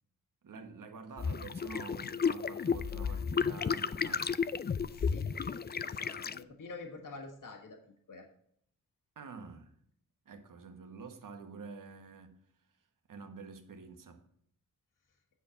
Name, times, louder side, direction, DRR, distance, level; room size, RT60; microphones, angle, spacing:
voice 1, 0.4-4.5 9.1-9.7 10.2-12.4 13.1-14.2, right 4 dB, 65° right, 1.4 m, -48 dB
sound 1, 1.2-6.4, left 6 dB, 30° left, 0.4 m, -33 dB
voice 2, 4.9-7.8 8.1-8.2, left 3 dB, 60° left, 1.7 m, -48 dB
9.8 x 4.5 x 7.1 m
wide cardioid pair, 90°, 35 cm